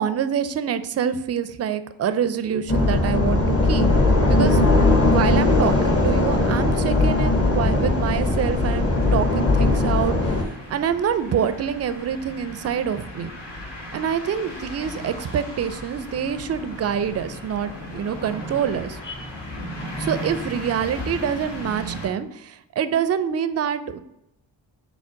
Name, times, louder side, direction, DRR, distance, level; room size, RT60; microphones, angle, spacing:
voice 1, 0.0-3.9 4.3-4.6 5.1-13.3 13.9-19.0 20.0-24.0, right 8 dB, 35° right, 12 dB, 0.4 m, -26 dB
sound 1, 2.7-10.4, left 2 dB, 30° left, 0.8 m, -19 dB
sound 2, 5.4-22.1, left 1 dB, 60° left, 1.4 m, -37 dB
5.6 x 2.1 x 3.7 m, 0.80 s
supercardioid pair, 45°, 48 cm